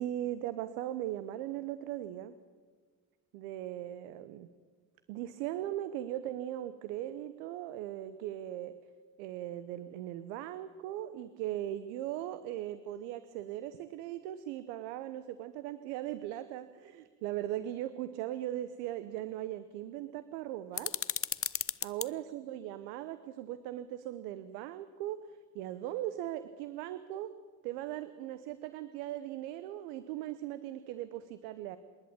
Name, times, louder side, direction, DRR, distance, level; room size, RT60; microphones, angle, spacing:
voice 1, 0.0-2.3 3.3-4.5 5.1-8.7 9.2-20.9 21.8-25.2 25.5-27.3 27.6-31.8, right 13 dB, 80° right, 13 dB, 1.0 m, -39 dB
sound 1, 20.7-22.1, left 8 dB, 30° left, 0.8 m, -35 dB
26.5 x 11.5 x 8.6 m, 1.5 s
hypercardioid pair, 55°, 47 cm